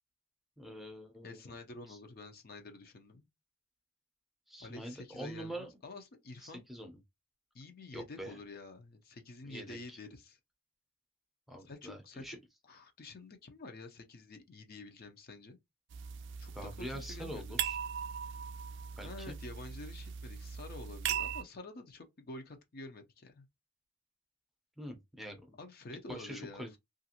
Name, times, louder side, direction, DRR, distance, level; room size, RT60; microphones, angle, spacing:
voice 1, 0.6-1.4 1.9-2.0 4.5-5.7 6.4-7.0 7.9-8.4 9.4-10.0 11.5-12.4 16.5-17.8 19.0-19.3 24.8-25.6 26.1-26.8, equal, ahead, 0.6 m, -45 dB
voice 2, 1.2-3.3 4.6-6.6 7.5-10.4 11.7-12.4 12.6-15.6 16.4-16.5 16.8-17.6 19.0-23.5 25.6-26.8, left 2 dB, 50° left, 0.6 m, -49 dB
sound 1, 15.9-21.4, right 8 dB, 60° right, 0.3 m, -39 dB
2.9 x 2.5 x 2.8 m
head